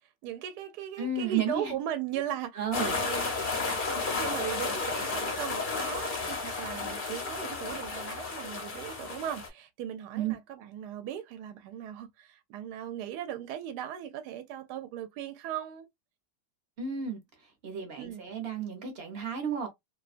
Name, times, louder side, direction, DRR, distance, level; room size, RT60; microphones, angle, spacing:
voice 1, 0.2-3.3 3.9-15.9 18.0-18.3, right 10 dB, 75° right, 1.1 m, -38 dB
voice 2, 1.0-1.7 2.6-3.0 3.5-3.8 10.1-10.3 16.8-17.2 17.6-19.7, right 6 dB, 50° right, 0.8 m, -32 dB
sound 1, 2.7-9.5, left 4 dB, 55° left, 0.5 m, -33 dB
2.7 x 2.2 x 2.4 m
omnidirectional pair, 1.9 m